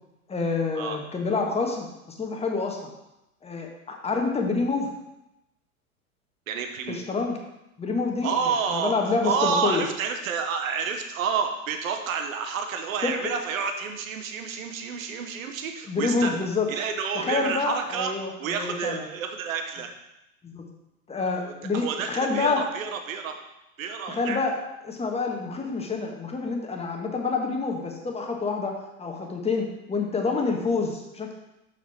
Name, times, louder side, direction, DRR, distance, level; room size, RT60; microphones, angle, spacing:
voice 1, 0.3-1.9 2.2-2.8 3.4-4.9 6.9-7.4 7.8-8.3 8.7-9.8 13.0-13.1 15.9-16.7 17.1-19.0 20.4-20.6 21.1-22.6 24.1-24.6 24.8-31.3, left 4 dB, 15° left, 2 dB, 1.2 m, -27 dB
voice 2, 6.5-7.0 8.2-8.9 9.2-18.1 18.4-19.9 21.4-23.4 23.8-24.4, right 6 dB, 65° right, 5 dB, 1.0 m, -29 dB
6.9 x 5.8 x 4.6 m, 0.90 s
figure-of-eight pair, 95°, 43 cm